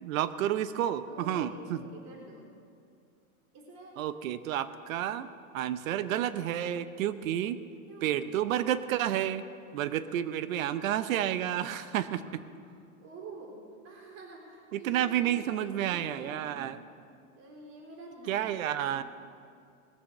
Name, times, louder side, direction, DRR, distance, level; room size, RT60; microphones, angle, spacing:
voice 1, 0.0-1.8 4.0-5.3 5.5-7.6 8.0-9.4 9.7-12.4 14.7-16.8 18.3-19.0, right 11 dB, 70° right, 13 dB, 0.9 m, -30 dB
voice 2, 1.0-2.5 3.5-4.0 7.9-8.2 12.2-12.4 12.6-16.6 17.4-19.0, right 2 dB, 35° right, -2 dB, 3.6 m, -48 dB
20.5 x 7.0 x 6.7 m, 2.4 s
hypercardioid pair, 135°, 42 cm